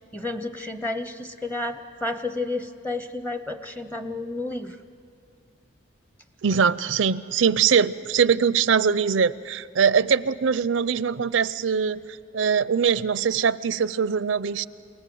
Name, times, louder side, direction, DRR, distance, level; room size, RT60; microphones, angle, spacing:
voice 1, 0.1-4.8, left 2 dB, 10° left, 7 dB, 0.6 m, -31 dB
voice 2, 6.4-12.0 12.3-14.7, right 6 dB, 75° right, 17 dB, 0.5 m, -22 dB
28.5 x 19.0 x 7.8 m, 2.3 s
head